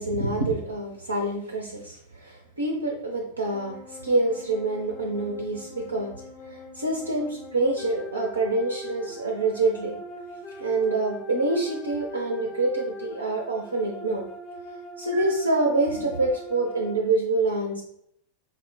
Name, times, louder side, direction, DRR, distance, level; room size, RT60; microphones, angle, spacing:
voice 1, 0.0-2.0 2.2-3.8 4.0-6.1 6.5-10.0 10.6-14.2 15.0-17.8, right 2 dB, 80° right, 1 dB, 0.6 m, -26 dB
sound 1, 3.5-16.9, left 1 dB, 30° left, 0.7 m, -41 dB
4.2 x 2.1 x 3.9 m, 0.70 s
figure-of-eight pair, 90°, 0 cm